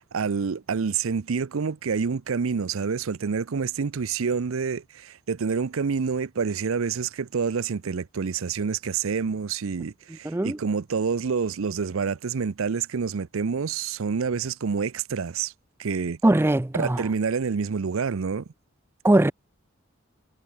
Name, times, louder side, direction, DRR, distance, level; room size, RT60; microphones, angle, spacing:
voice 1, 0.0-15.5 15.8-16.2 16.8-18.4, right 5 dB, 75° right, 0.5 m, -27 dB
voice 2, 10.3-10.6 16.2-17.0 19.0-19.3, right 1 dB, 10° right, 0.4 m, -20 dB
head